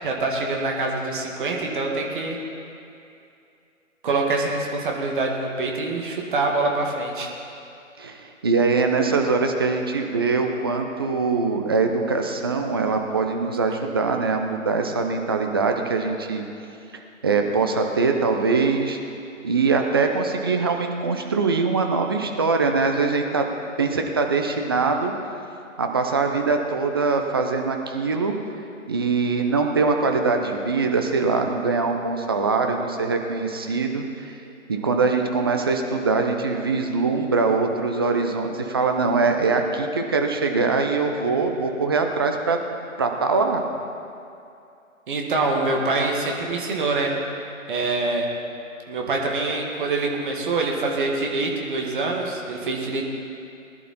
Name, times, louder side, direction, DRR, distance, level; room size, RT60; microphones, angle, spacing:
voice 1, 0.0-2.4 4.0-7.3 45.1-47.1 47.7-48.3 48.9-53.1, right 3 dB, 40° right, 0 dB, 2.0 m, -25 dB
voice 2, 8.0-16.4 17.2-19.0 19.4-23.5 23.8-25.1 25.8-28.3 28.9-42.6 43.0-43.6, right 4 dB, 20° right, 4 dB, 0.6 m, -23 dB
20.0 x 11.0 x 4.3 m, 2.6 s
figure-of-eight pair, 145°, 40 cm